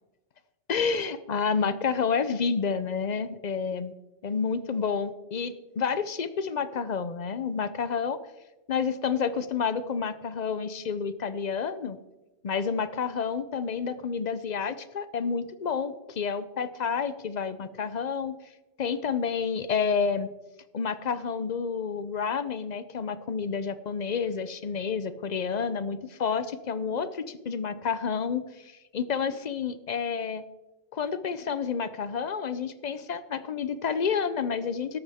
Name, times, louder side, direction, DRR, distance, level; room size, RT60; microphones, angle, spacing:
voice 1, 0.7-3.9 4.2-8.2 8.7-12.0 12.4-18.4 18.8-20.3 20.7-30.4 30.9-35.0, left 6 dB, 45° left, 13 dB, 0.7 m, -29 dB
13.0 x 12.0 x 3.5 m, 1.1 s
omnidirectional pair, 1.1 m